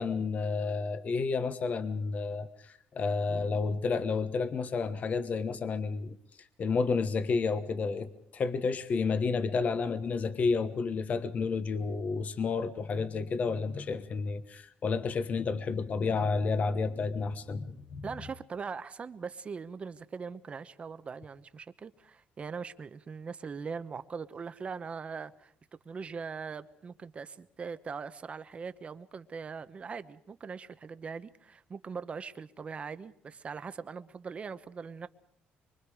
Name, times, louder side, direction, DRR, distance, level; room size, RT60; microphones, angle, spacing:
voice 1, 0.0-6.2 6.6-18.1, left 4 dB, 40° left, 11 dB, 1.2 m, -31 dB
voice 2, 18.0-25.5 25.8-35.1, right 5 dB, 35° right, 12 dB, 1.0 m, -41 dB
24.5 x 24.0 x 4.9 m, 0.68 s
cardioid pair, 120°, 4 cm